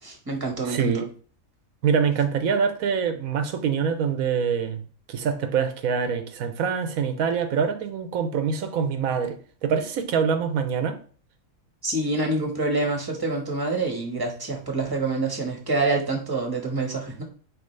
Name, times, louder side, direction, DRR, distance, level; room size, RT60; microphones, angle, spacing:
voice 1, 0.0-1.0 11.8-17.2, right 3 dB, 15° right, 1.3 m, -26 dB
voice 2, 0.6-1.1 1.8-4.8 5.1-11.0, right 6 dB, 90° right, 1.2 m, -25 dB
8.9 x 3.2 x 3.3 m
omnidirectional pair, 1.4 m